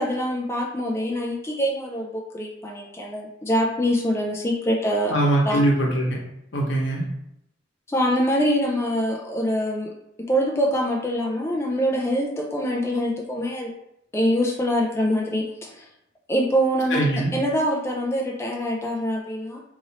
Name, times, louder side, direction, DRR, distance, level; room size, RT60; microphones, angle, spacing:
voice 1, 0.0-5.1 5.4-5.6 7.9-9.9 10.3-13.7 14.1-15.8 16.3-17.0 17.3-19.6, equal, 15° left, -1 dB, 0.4 m, -24 dB
voice 2, 5.1-6.2 6.5-7.0 16.9-17.3, right 1 dB, 80° left, -2 dB, 1.0 m, -21 dB
3.0 x 2.5 x 4.1 m, 0.80 s
head